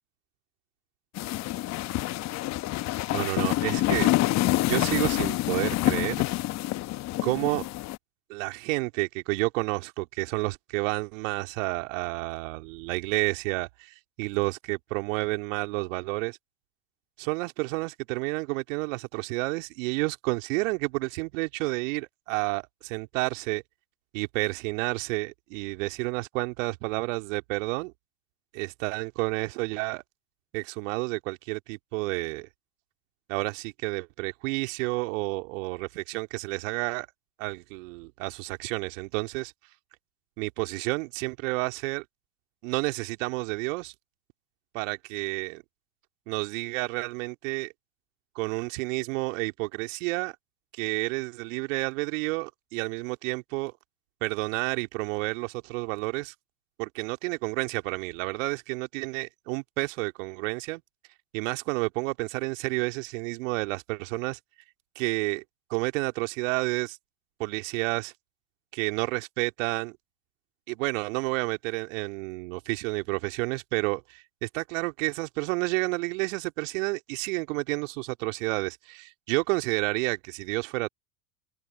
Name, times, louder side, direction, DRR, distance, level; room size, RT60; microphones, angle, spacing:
sound 1, 1.2-8.0, left 17 dB, 40° left, 1.1 m, -27 dB
voice 1, 3.1-4.1 4.7-6.2 7.2-7.7 8.3-16.4 17.2-23.6 24.1-27.9 28.5-30.0 30.5-32.5 33.3-37.1 37.4-39.5 40.4-42.0 42.6-43.9 44.7-45.6 46.3-47.7 48.3-50.4 50.7-53.7 54.2-56.3 56.8-60.8 61.3-64.4 65.0-65.4 65.7-67.0 67.4-68.1 68.7-70.0 70.7-80.9, right 25 dB, 60° right, 2.5 m, -30 dB
hypercardioid pair, 85°, 43 cm